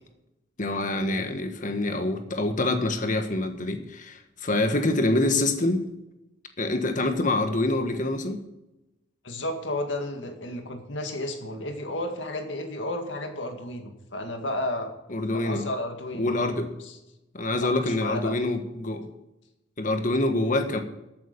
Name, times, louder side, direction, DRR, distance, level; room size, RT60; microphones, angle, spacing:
voice 1, 0.6-5.8 6.6-8.4 15.1-15.7 16.2-16.8 17.3-19.1 19.8-20.8, left 2 dB, 45° left, 7 dB, 1.4 m, -26 dB
voice 2, 9.2-14.9 15.3-16.5 16.8-17.0 17.6-18.3, left 1 dB, 80° left, 5 dB, 2.0 m, -32 dB
14.0 x 8.7 x 5.3 m, 0.96 s
head